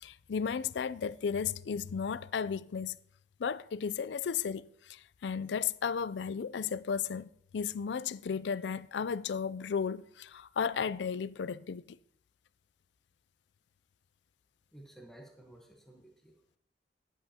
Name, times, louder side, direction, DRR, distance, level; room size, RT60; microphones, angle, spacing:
voice 1, 0.0-3.0 3.4-12.0, left 6 dB, 80° left, 0.4 m, -34 dB
voice 2, 14.7-16.6, right 1 dB, 5° left, 1.1 m, -54 dB
14.0 x 10.0 x 2.9 m
head